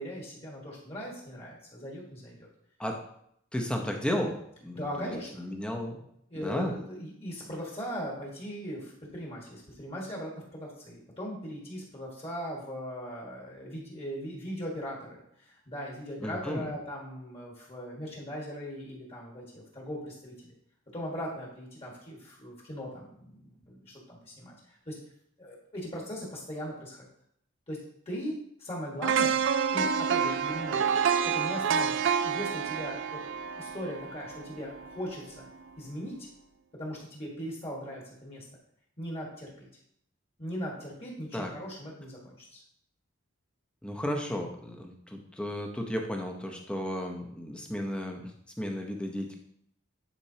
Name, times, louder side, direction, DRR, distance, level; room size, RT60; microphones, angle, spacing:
voice 1, 0.0-2.5 4.7-5.4 6.3-20.5 20.9-25.0 25.4-27.0 27.7-27.8 28.0-29.4 29.7-30.8 31.2-33.2 33.6-35.5 35.8-36.1 36.7-38.5 39.0-39.7 40.4-42.6, equal, 30° left, -2 dB, 1.5 m, -39 dB
voice 2, 3.5-4.3 4.6-5.1 5.4-6.1 6.3-6.7 16.2-16.7 41.3-41.5 43.8-48.3 48.6-49.4, equal, 5° left, 2 dB, 0.8 m, -33 dB
sound 1, 29.0-35.0 35.4-35.6, right 6 dB, 60° right, 0.3 m, -28 dB
10.0 x 4.5 x 2.8 m, 0.72 s
head